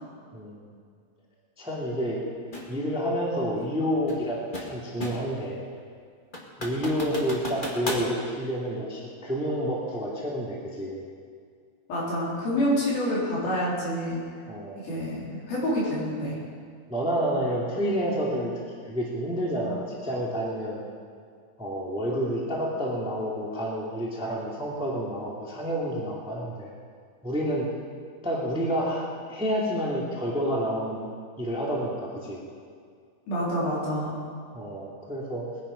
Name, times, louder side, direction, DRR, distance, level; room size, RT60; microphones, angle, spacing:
voice 1, 0.3-0.7 1.6-2.2 2.7-5.6 6.6-11.0 14.5-14.8 16.9-18.5 18.9-20.8 21.6-26.7 27.2-27.7 28.2-31.1 31.4-32.4 34.5-35.4, equal, ahead, -3 dB, 1.5 m, -29 dB
sound 1, 2.5-2.7 4.1-5.4 5.8-5.9 6.3-8.1, left 1 dB, 30° left, 0.8 m, -34 dB
voice 2, 11.9-14.2 14.8-16.4 33.3-34.2, equal, 75° left, -5 dB, 5.5 m, -27 dB
21.5 x 9.9 x 5.1 m, 2.1 s
omnidirectional pair, 4.2 m